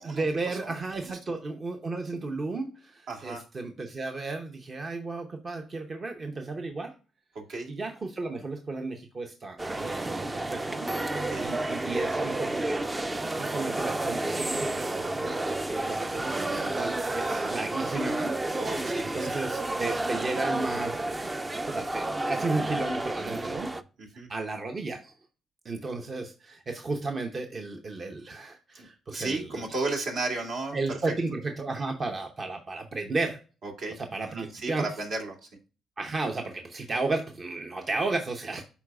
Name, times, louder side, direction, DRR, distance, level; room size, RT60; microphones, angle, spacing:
voice 1, 0.0-6.9 7.7-18.4 18.8-21.1 21.7-23.7 24.3-25.1 25.6-29.6 30.7-33.4 34.0-34.9 36.0-38.6, right 3 dB, 40° right, 4 dB, 0.8 m, -34 dB
voice 2, 1.0-1.4 3.1-3.4 7.4-7.7 11.1-11.5 17.3-17.5 18.5-19.3 23.2-23.7 24.0-24.3 28.7-31.0 31.8-31.9 33.6-34.0 34.3-35.5, right 3 dB, 70° right, 1 dB, 2.3 m, -35 dB
sound 1, 9.6-23.8, right 2 dB, 20° right, 0.4 m, -31 dB
11.5 x 4.0 x 2.4 m, 0.35 s
cardioid pair, 90°, 0 cm